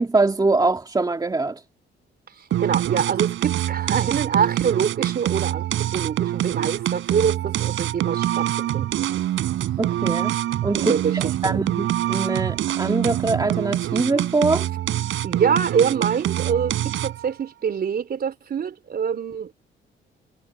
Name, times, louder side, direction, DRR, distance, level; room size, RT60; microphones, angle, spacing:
voice 1, 0.0-1.6 9.8-10.4 10.6-14.7, right 3 dB, 20° right, 2.5 m, -23 dB
voice 2, 2.4-9.2 10.8-11.6 15.2-19.5, right 7 dB, 50° right, 4.4 m, -25 dB
sound 1, 2.5-17.3, right 13 dB, 80° right, 3.8 m, -25 dB
cardioid pair, 90°, 20 cm